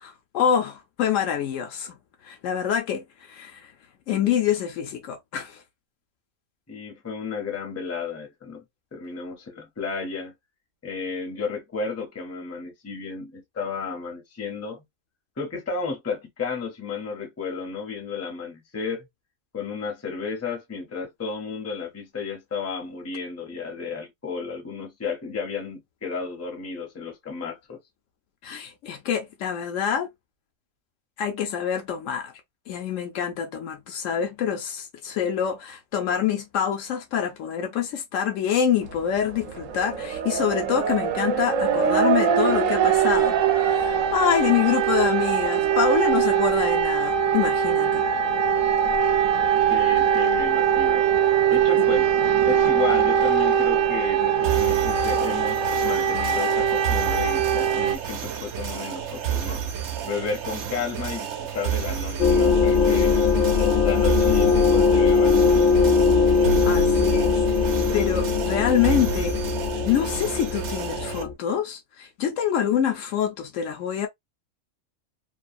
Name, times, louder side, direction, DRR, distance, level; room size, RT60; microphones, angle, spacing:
voice 1, 0.0-1.9 2.2-3.7 4.1-5.6 28.4-30.1 31.2-32.3 32.7-48.0 51.8-51.9 66.7-67.4 67.9-69.3 69.8-74.1, left 8 dB, 80° left, 1.0 m, -26 dB
voice 2, 6.7-8.6 8.9-10.3 10.8-14.8 15.4-19.1 19.5-27.8 49.7-51.0 51.5-52.1 52.4-59.6 60.0-63.2 63.5-65.6, left 5 dB, 20° left, 0.5 m, -33 dB
sound 1, 39.0-39.1 39.4-58.0, right 8 dB, 90° right, 1.0 m, -22 dB
sound 2, 54.4-71.2, right 9 dB, 65° right, 0.9 m, -31 dB
sound 3, 62.2-71.3, left 5 dB, 60° left, 0.6 m, -20 dB
2.7 x 2.2 x 2.5 m
omnidirectional pair, 1.3 m